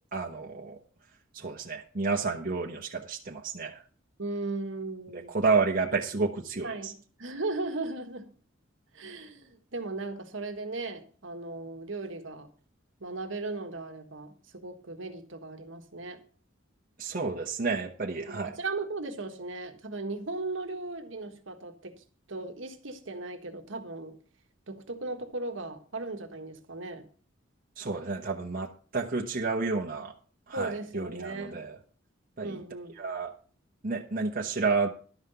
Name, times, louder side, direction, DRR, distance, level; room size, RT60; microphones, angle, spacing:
voice 1, 0.1-0.8 1.3-3.8 5.1-6.9 17.0-18.5 27.8-30.1 30.5-31.7 32.4-32.6 33.0-33.3 33.8-34.9, right 4 dB, 45° right, 1 dB, 1.1 m, -30 dB
voice 2, 4.2-5.3 6.6-6.9 7.2-8.3 8.9-12.5 13.0-16.2 18.2-24.1 24.7-27.1 30.5-31.6 32.4-32.9, right 3 dB, 65° right, 6 dB, 1.4 m, -37 dB
12.0 x 5.7 x 6.8 m, 0.42 s
head